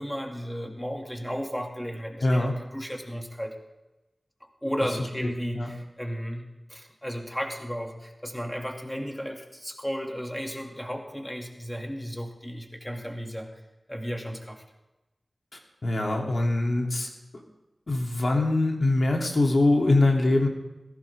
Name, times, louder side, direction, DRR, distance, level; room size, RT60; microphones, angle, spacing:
voice 1, 0.0-3.6 4.4-13.5 13.9-14.6, equal, 5° left, 2 dB, 2.5 m, -34 dB
voice 2, 2.2-2.5 5.6-5.7 15.8-17.1 17.9-20.5, left 2 dB, 60° left, 0 dB, 3.0 m, -23 dB
19.0 x 16.5 x 3.7 m, 1.0 s
wide cardioid pair, 50°, 0 cm